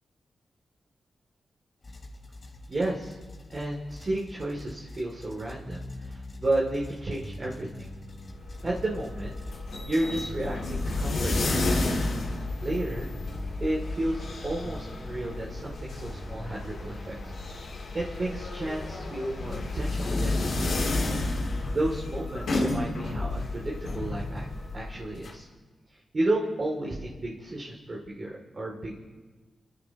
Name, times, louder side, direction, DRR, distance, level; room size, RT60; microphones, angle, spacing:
sound 1, 1.8-9.5, left 2 dB, 45° left, 3.5 m, -47 dB
voice 1, 2.7-3.1 3.5-7.9 8.6-9.4 9.9-11.9 12.6-13.1 13.6-17.3 17.9-21.0 21.7-24.5 24.7-25.5 25.9-29.0, right 1 dB, 45° right, -3 dB, 2.7 m, -32 dB
sound 2, 5.6-17.5, left 1 dB, ahead, 1.6 m, -45 dB
sound 3, 8.3-25.3, left 2 dB, 75° left, 2.9 m, -31 dB
28.5 x 13.5 x 3.0 m, 1.3 s
cardioid pair, 50°, 0 cm